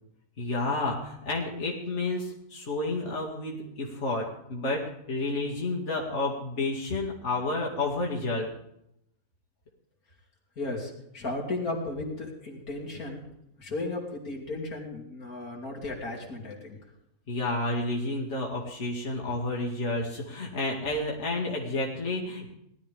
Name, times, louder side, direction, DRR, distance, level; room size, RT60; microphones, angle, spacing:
voice 1, 0.4-8.5 17.3-22.5, left 2 dB, 50° left, -2 dB, 2.5 m, -30 dB
voice 2, 10.6-13.2 13.6-16.8, left 2 dB, 80° left, -1 dB, 3.4 m, -35 dB
19.0 x 12.5 x 3.6 m, 0.78 s
omnidirectional pair, 1.5 m